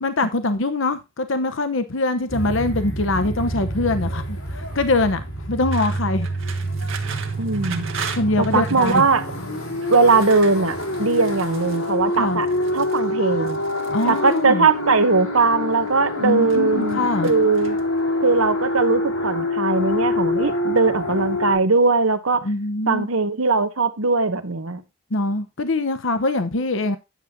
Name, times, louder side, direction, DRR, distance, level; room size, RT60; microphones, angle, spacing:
voice 1, 0.0-6.3 8.1-9.0 12.2-12.4 13.9-14.7 16.2-17.3 22.4-23.1 25.1-27.0, left 2 dB, 65° left, 0.9 m, -23 dB
sound 1, 2.3-21.5, left 1 dB, 90° left, 3.9 m, -26 dB
sound 2, 5.7-9.1 9.8-11.9 12.4-13.0 13.4-14.4 15.3-15.9 16.2-16.8 17.2-18.0, right 6 dB, 65° right, 1.7 m, -37 dB
voice 2, 7.4-7.9 8.4-9.2 9.9-12.5 12.7-13.6 14.1-17.8 18.2-22.5 22.9-24.8, right 4 dB, 85° right, 1.2 m, -20 dB
9.9 x 7.4 x 3.7 m
head